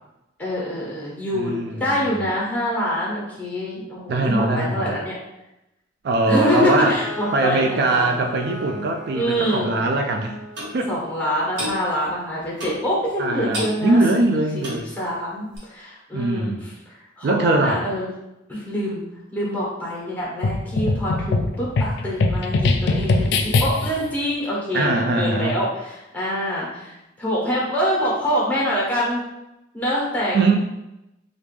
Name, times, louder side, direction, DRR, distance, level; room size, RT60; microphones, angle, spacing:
voice 1, 0.4-5.1 6.2-8.2 9.1-9.7 10.9-14.2 14.5-14.6 15.0-16.7 17.2-18.1 18.5-19.0 19.3-29.2 29.7-30.4, equal, 10° left, -5 dB, 1.1 m, -25 dB
voice 2, 1.3-2.2 4.1-5.0 6.0-7.0 7.3-10.4 10.7-10.9 13.2-14.9 16.1-16.7 17.2-17.9 24.7-25.6 30.3-30.6, right 2 dB, 60° right, 3 dB, 0.3 m, -21 dB
Bowed string instrument, 6.3-11.9, equal, 10° right, 1.2 m, -38 dB
Clock, 10.6-10.7 11.6-11.8 12.6-12.9 13.5-13.8 14.6-14.9 15.6-15.7, equal, 75° right, 1.3 m, -29 dB
sound 1, 20.4-24.1, left 3 dB, 65° left, 0.3 m, -21 dB
3.3 x 2.5 x 3.3 m, 0.91 s
head